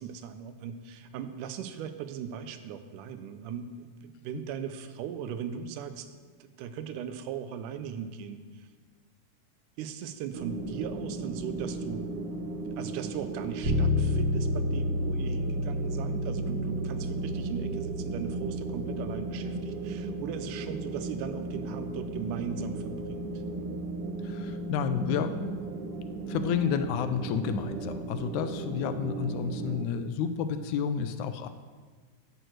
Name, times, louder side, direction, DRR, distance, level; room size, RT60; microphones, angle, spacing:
voice 1, 0.0-8.7 9.8-12.1 12.8-23.4, right 7 dB, 85° right, 10 dB, 2.2 m, -38 dB
sound 1, 10.3-29.8, right 3 dB, 65° right, 1.6 m, -36 dB
Bass guitar, 13.6-23.4, left 1 dB, 45° right, 1.3 m, -33 dB
voice 2, 24.2-25.6 26.3-31.5, left 7 dB, 80° left, 10 dB, 1.9 m, -30 dB
10.5 x 4.7 x 7.8 m, 1.5 s
omnidirectional pair, 3.6 m